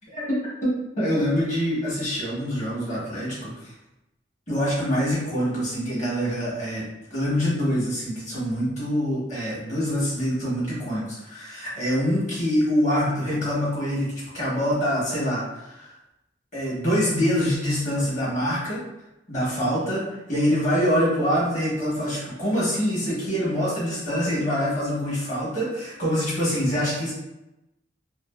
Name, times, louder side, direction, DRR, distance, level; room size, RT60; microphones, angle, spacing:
voice 1, 1.0-3.7 4.5-6.8 7.1-15.9 16.5-18.8 19.3-27.1, equal, 45° left, -6 dB, 1.0 m, -25 dB
2.5 x 2.3 x 2.2 m, 0.93 s
head